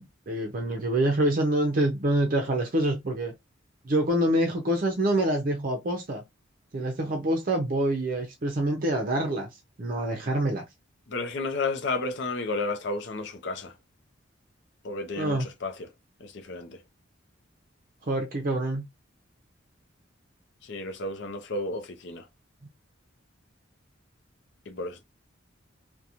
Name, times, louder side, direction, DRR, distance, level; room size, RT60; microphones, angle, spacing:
voice 1, 0.0-3.3 3.8-6.2 6.7-9.5 9.8-10.6 15.2-15.5 18.0-18.8, right 1 dB, 45° right, 0.5 m, -26 dB
voice 2, 11.1-13.7 14.8-15.9 16.2-16.8 20.6-22.3 24.7-25.0, left 3 dB, 60° left, 0.5 m, -32 dB
2.8 x 2.2 x 2.4 m
head